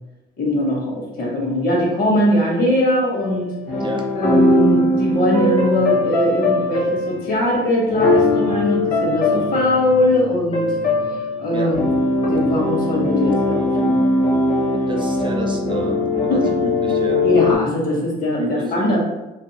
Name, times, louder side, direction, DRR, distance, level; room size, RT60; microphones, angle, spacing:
voice 1, 0.4-3.5 4.1-10.7 11.4-11.9 12.2-14.0 16.3-16.5 17.2-19.0, left 1 dB, 60° left, -2 dB, 1.1 m, -20 dB
sound 1, 3.2-17.5, left 1 dB, 40° left, 0.7 m, -20 dB
voice 2, 14.7-17.2 18.4-19.0, right 1 dB, 30° right, 2 dB, 0.4 m, -29 dB
2.7 x 2.5 x 2.8 m, 0.99 s
cardioid pair, 110°, 17 cm